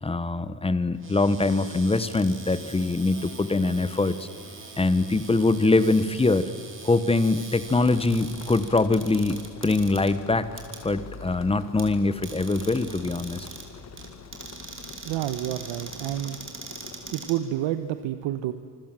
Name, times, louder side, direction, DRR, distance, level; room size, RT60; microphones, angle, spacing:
voice 1, 0.0-4.2 4.8-6.5 6.8-10.5 10.8-13.5, left 3 dB, 15° left, 13 dB, 1.2 m, -23 dB
Cupboard open or close, 0.9-18.0, right 4 dB, 25° right, 4.3 m, -43 dB
sound 1, 7.7-17.1, left 6 dB, 35° left, 1.7 m, -45 dB
voice 2, 15.0-16.7 17.1-18.5, right 13 dB, 85° right, 10 dB, 1.2 m, -29 dB
26.5 x 25.0 x 7.6 m, 2.2 s
cardioid pair, 140°, 44 cm